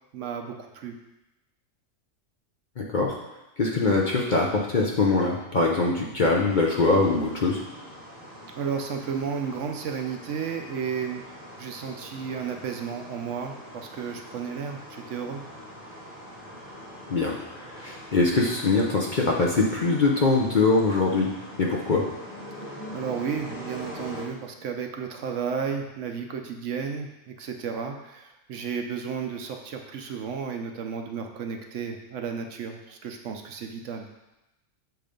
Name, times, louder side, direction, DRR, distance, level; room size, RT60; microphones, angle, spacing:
voice 1, 0.1-1.0 8.6-11.2 11.6-15.4 22.9-34.1, right 6 dB, 70° right, 4 dB, 0.9 m, -33 dB
voice 2, 2.8-3.2 3.6-7.6 17.1-21.3 21.6-22.0, left 3 dB, 45° left, -2 dB, 0.7 m, -23 dB
sound 1, 6.5-24.2, equal, 10° left, 1.0 m, -43 dB
6.8 x 3.2 x 5.0 m, 0.97 s
omnidirectional pair, 1.4 m